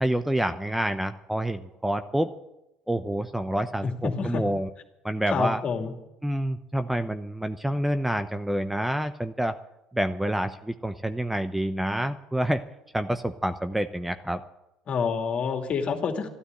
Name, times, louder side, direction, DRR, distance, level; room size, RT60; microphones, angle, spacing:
voice 1, 0.0-2.3 2.9-4.7 5.0-5.6 6.2-9.6 9.9-12.6 12.9-14.4, right 1 dB, 5° right, 9 dB, 0.8 m, -27 dB
voice 2, 3.8-4.5 5.3-5.9 14.9-16.3, left 5 dB, 45° left, 4 dB, 2.6 m, -28 dB
13.0 x 13.0 x 8.1 m, 0.91 s
hypercardioid pair, 70°, 3 cm